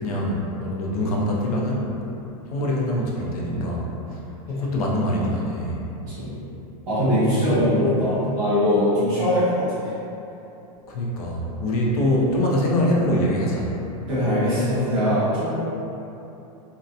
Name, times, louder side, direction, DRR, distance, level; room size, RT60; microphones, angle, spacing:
voice 1, 0.0-1.8 2.5-3.9 4.5-5.8 10.9-13.7, left 1 dB, 75° left, -3 dB, 0.6 m, -24 dB
voice 2, 6.9-9.9 14.1-15.5, equal, 20° right, -14 dB, 1.1 m, -22 dB
2.7 x 2.1 x 2.4 m, 2.9 s
supercardioid pair, 175°, 19 cm